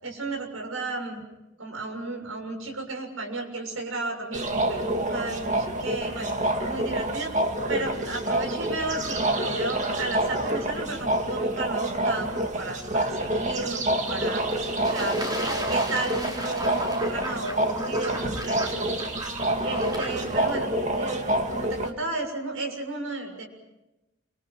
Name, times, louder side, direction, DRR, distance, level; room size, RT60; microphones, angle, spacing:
voice 1, 0.0-1.2 1.6-7.4 7.7-14.4 14.8-18.9 19.6-20.7 20.9-21.2 21.5-23.5, right 2 dB, 85° right, 2 dB, 7.0 m, -33 dB
sound 1, 4.3-21.9, right 1 dB, 35° right, 2.2 m, -27 dB
Fowl / Bird / Water, 14.0-20.5, right 1 dB, 20° right, 4.1 m, -36 dB
30.0 x 26.0 x 6.0 m, 0.98 s
head